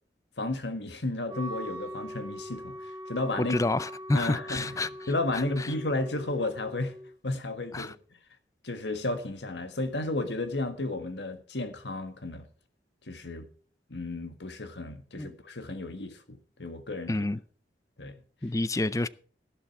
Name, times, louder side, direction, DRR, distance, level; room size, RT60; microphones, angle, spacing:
voice 1, 0.4-3.6 4.1-4.8 5.1-6.9 7.2-7.9 8.6-12.5 13.1-13.5 13.9-17.2 18.0-18.2, left 2 dB, 80° left, 1.7 m, -33 dB
Wind instrument woodwind instrument, 1.3-7.1, equal, 25° right, 3.8 m, -42 dB
voice 2, 3.4-4.9 7.7-7.9 15.2-15.3 17.1-17.4 18.4-19.1, left 2 dB, 20° left, 0.5 m, -28 dB
13.0 x 11.5 x 4.7 m
head